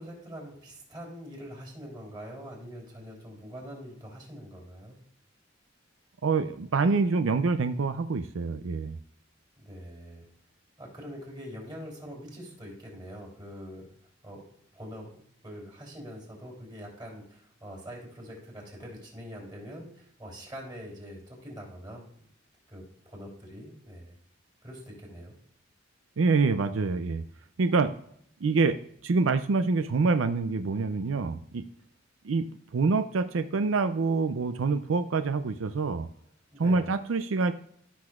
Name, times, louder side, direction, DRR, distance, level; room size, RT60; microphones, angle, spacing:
voice 1, 0.0-5.0 9.6-10.2 10.8-13.9 14.2-14.4 14.7-22.0 22.7-24.1 24.6-25.4 36.5-36.9, equal, 25° right, -2 dB, 3.3 m, -44 dB
voice 2, 6.2-9.0 26.2-27.2 27.6-27.9 28.4-28.8 29.0-31.6 32.2-32.4 32.7-36.1 36.6-37.5, right 4 dB, 90° right, 10 dB, 0.5 m, -26 dB
14.5 x 6.2 x 2.4 m, 0.67 s
head